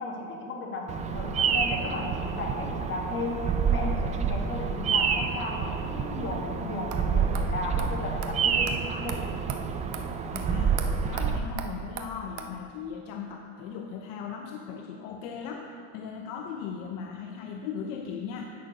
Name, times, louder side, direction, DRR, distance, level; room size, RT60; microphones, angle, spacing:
voice 1, 0.0-9.2, left 2 dB, 35° left, -1 dB, 1.7 m, -35 dB
Bird vocalization bird call bird song, 0.9-11.4, right 6 dB, 20° right, 0.3 m, -28 dB
sound 1, 6.9-7.0 7.3-7.5 7.8-7.9 8.2-8.3 8.7-8.8 9.1-9.2 9.5-9.6 9.9-10.0 10.3-10.4 10.8-10.9 11.2-11.3 11.6-11.7 12.0-12.1 12.4-12.5, right 10 dB, 55° right, 0.8 m, -37 dB
voice 2, 10.3-18.4, left 6 dB, 65° left, 3 dB, 0.7 m, -38 dB
9.5 x 6.3 x 5.1 m, 2.4 s
cardioid pair, 140°, 35 cm